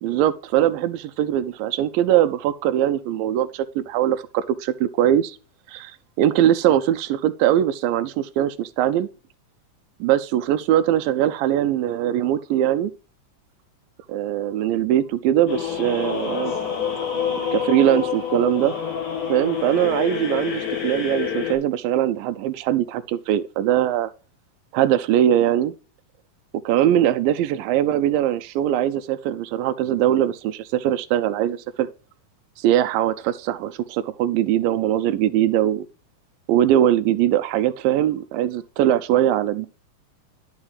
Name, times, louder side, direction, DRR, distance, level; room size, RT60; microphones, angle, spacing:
voice 1, 0.0-5.4 5.7-9.1 10.0-12.9 14.1-16.5 17.5-18.8 19.3-24.1 24.7-25.7 26.7-31.9 32.6-35.9 36.5-39.7, right 11 dB, 90° right, 2.3 m, -21 dB
sound 1, 15.5-21.5, left 7 dB, 65° left, 3.6 m, -27 dB
11.0 x 4.8 x 4.9 m
omnidirectional pair, 3.9 m